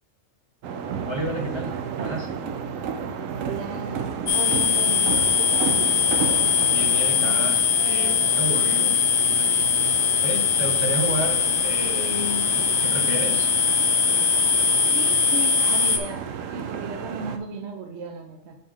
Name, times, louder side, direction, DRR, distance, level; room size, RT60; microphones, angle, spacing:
sound 1, 0.6-17.4, right 7 dB, 85° right, 1.0 m, -32 dB
voice 1, 1.0-2.3 6.7-8.9 9.2-9.5 10.2-13.5, right 1 dB, 25° right, 0 dB, 1.0 m, -31 dB
voice 2, 3.4-5.7 14.9-18.6, right 4 dB, 65° right, 4 dB, 1.0 m, -35 dB
sound 2, 4.3-16.0, left 7 dB, 80° left, 1.1 m, -21 dB
7.7 x 5.2 x 3.7 m, 0.75 s
omnidirectional pair, 1.3 m